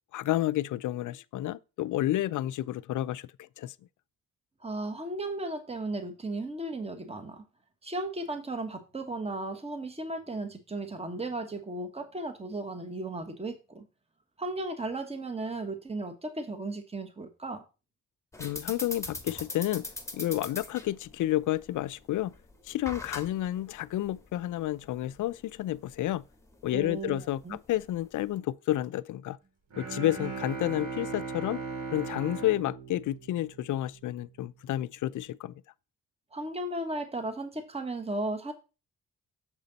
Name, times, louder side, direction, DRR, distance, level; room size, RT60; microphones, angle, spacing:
voice 1, 0.1-3.3 3.6-3.7 18.4-19.9 20.1-22.3 22.7-26.2 26.6-29.4 29.8-31.6 31.9-35.5, left 14 dB, 65° left, 0.5 m, -30 dB
voice 2, 4.6-7.4 7.8-13.8 14.4-17.6 26.7-27.6 36.3-38.5, right 2 dB, 20° right, 1.4 m, -35 dB
sound 1, 18.3-28.4, left 2 dB, 10° left, 1.6 m, -43 dB
Bowed string instrument, 29.7-34.0, right 4 dB, 55° right, 4.0 m, -38 dB
7.4 x 5.1 x 4.0 m
supercardioid pair, 65°, 33 cm